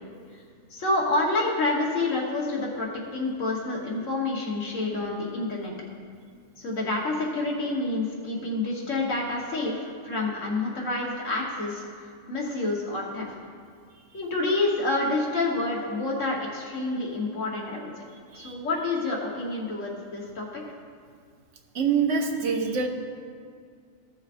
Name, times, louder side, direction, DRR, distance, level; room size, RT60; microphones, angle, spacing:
voice 1, 0.7-5.7 6.6-13.3 14.1-17.9 18.3-20.8, left 2 dB, 70° left, -3 dB, 1.6 m, -28 dB
voice 2, 21.7-22.9, right 5 dB, 70° right, 3 dB, 1.1 m, -25 dB
15.0 x 7.0 x 2.5 m, 2.1 s
omnidirectional pair, 1.4 m